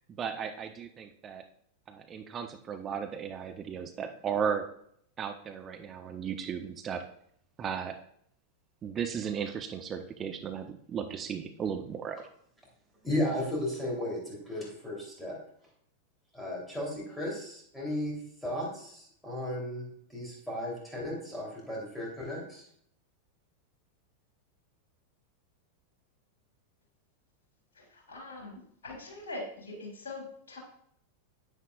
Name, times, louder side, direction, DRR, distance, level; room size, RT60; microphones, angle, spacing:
voice 1, 0.1-1.4 1.9-4.7 5.2-7.0 7.6-8.0 8.8-12.2, right 7 dB, 25° right, 6 dB, 0.7 m, -35 dB
voice 2, 13.0-15.3 16.3-18.2 18.4-22.6, left 1 dB, ahead, -4 dB, 3.3 m, -35 dB
voice 3, 27.7-30.6, left 2 dB, 60° left, -1 dB, 3.5 m, -43 dB
9.9 x 9.2 x 2.4 m, 0.66 s
figure-of-eight pair, 90°, 0 cm